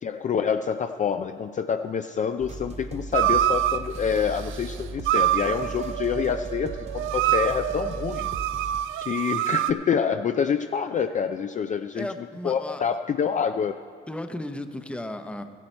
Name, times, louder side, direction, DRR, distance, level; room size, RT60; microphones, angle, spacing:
voice 1, 0.0-8.3 9.0-12.1 12.4-13.8, left 7 dB, 40° left, 7 dB, 0.4 m, -27 dB
sound 1, 2.4-8.8, right 3 dB, 35° right, 0.7 m, -37 dB
sound 2, 3.1-3.8 5.1-9.7, right 12 dB, 80° right, 0.4 m, -25 dB
voice 2, 11.9-12.8 14.1-15.4, left 1 dB, 5° left, 8 dB, 0.7 m, -34 dB
14.5 x 10.5 x 4.4 m, 2.2 s
cardioid pair, 90°, 20 cm